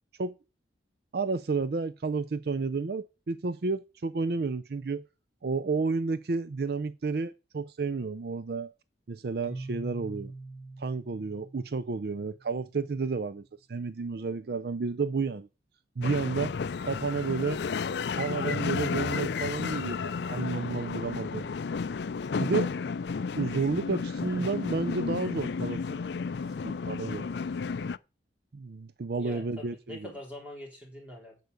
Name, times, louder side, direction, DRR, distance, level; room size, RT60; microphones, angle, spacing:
voice 1, 1.1-5.0 5.4-8.7 9.1-10.3 10.8-13.4 13.7-15.5 16.0-16.5 16.8-17.6 18.1-21.5 22.4-22.7 23.4-26.2 26.6-27.3 28.5-30.1, right 4 dB, 55° right, 0.4 m, -31 dB
Keyboard (musical), 9.4-13.1, right 2 dB, 35° left, 2.3 m, -44 dB
sound 1, 16.0-28.0, left 5 dB, 70° left, 0.4 m, -32 dB
voice 2, 29.2-31.4, left 1 dB, 5° right, 3.7 m, -44 dB
8.0 x 6.6 x 8.2 m
head